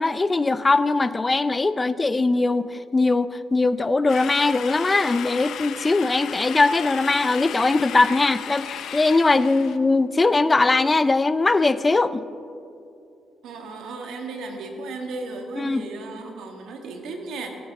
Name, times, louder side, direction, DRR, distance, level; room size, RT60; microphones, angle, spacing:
voice 1, 0.0-12.2 15.6-15.9, left 3 dB, 25° left, 15 dB, 0.4 m, -21 dB
sound 1, 4.1-9.8, left 8 dB, 70° left, 0.7 m, -35 dB
voice 2, 13.4-17.5, right 3 dB, 80° right, 3 dB, 1.7 m, -35 dB
18.5 x 10.0 x 3.6 m, 2.5 s
cardioid pair, 90°, 0 cm